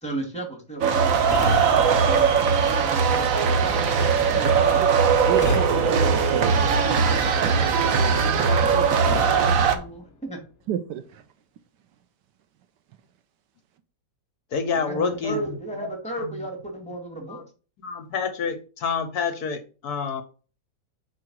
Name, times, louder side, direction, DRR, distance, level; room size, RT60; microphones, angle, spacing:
voice 1, 0.0-1.3 1.8-3.6 4.2-4.8 8.3-10.4 14.8-17.5, right 1 dB, 5° left, 2.2 m, -35 dB
sound 1, 0.8-9.8, right 6 dB, 60° right, 1.1 m, -20 dB
sound 2, 1.3-3.2 5.4-7.1 9.0-10.7, left 6 dB, 50° left, 1.0 m, -36 dB
voice 2, 5.3-8.4 10.7-11.2, right 10 dB, 75° right, 1.3 m, -32 dB
voice 3, 14.5-15.4 16.2-16.3 17.3-17.4 17.8-20.2, left 5 dB, 65° left, 1.2 m, -28 dB
4.8 x 4.7 x 6.1 m
omnidirectional pair, 1.9 m